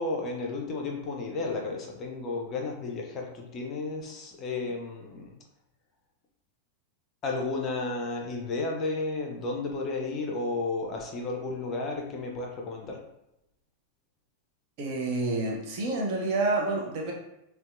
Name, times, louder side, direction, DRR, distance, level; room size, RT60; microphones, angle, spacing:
voice 1, 0.0-5.3 7.2-13.0, left 3 dB, 30° left, 0 dB, 0.5 m, -33 dB
voice 2, 14.8-17.1, right 2 dB, 45° right, -1 dB, 0.6 m, -28 dB
2.7 x 2.1 x 2.4 m, 0.85 s
figure-of-eight pair, 90°, 0 cm